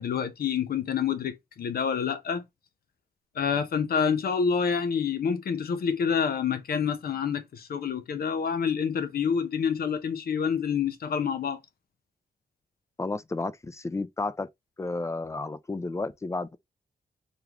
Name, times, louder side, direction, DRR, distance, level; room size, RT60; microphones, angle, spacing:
voice 1, 0.0-2.4 3.3-11.6, left 6 dB, 75° left, 0.7 m, -27 dB
voice 2, 13.0-14.5 14.8-16.6, left 3 dB, 20° left, 0.3 m, -32 dB
3.6 x 2.3 x 2.9 m
cardioid pair, 90°, 16 cm